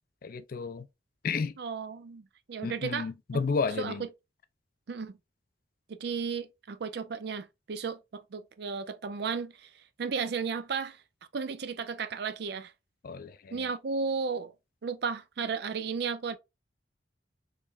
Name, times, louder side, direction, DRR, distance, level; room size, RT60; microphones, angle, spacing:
voice 1, 0.2-0.9 1.2-1.5 2.6-4.0 13.0-13.7, left 4 dB, 55° left, 0.4 m, -32 dB
voice 2, 1.6-3.1 3.8-4.1 4.9-5.2 6.0-11.0 11.3-12.7 13.5-14.5 14.8-16.4, right 5 dB, 65° right, 0.5 m, -34 dB
3.7 x 3.1 x 2.4 m
head